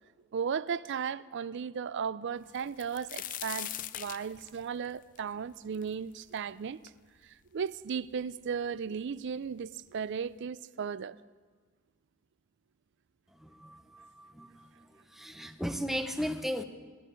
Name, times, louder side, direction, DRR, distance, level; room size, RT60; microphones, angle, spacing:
voice 1, 0.3-6.8 7.2-11.2, right 6 dB, 55° right, 0.4 m, -35 dB
sound 1, 2.5-6.4 6.9-7.0 7.7-7.8 8.1-8.8 9.6-9.7 10.1-10.3, left 12 dB, 35° left, 0.4 m, -41 dB
voice 2, 13.4-14.8 15.1-16.6, equal, ahead, 0.7 m, -36 dB
18.0 x 12.5 x 5.2 m
head